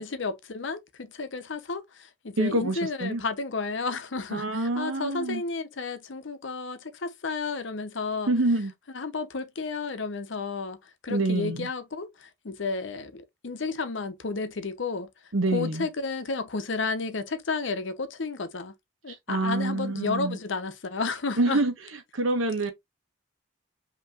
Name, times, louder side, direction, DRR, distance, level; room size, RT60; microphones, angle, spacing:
voice 1, 0.0-8.3 8.9-10.8 11.0-15.1 15.5-18.7 19.0-21.6, left 4 dB, 70° left, 0.7 m, -32 dB
voice 2, 2.4-3.2 4.3-5.4 8.3-8.7 11.1-11.7 15.3-15.9 19.3-20.4 21.4-21.7 22.1-22.7, right 2 dB, 85° right, 1.2 m, -26 dB
5.3 x 3.0 x 2.4 m
head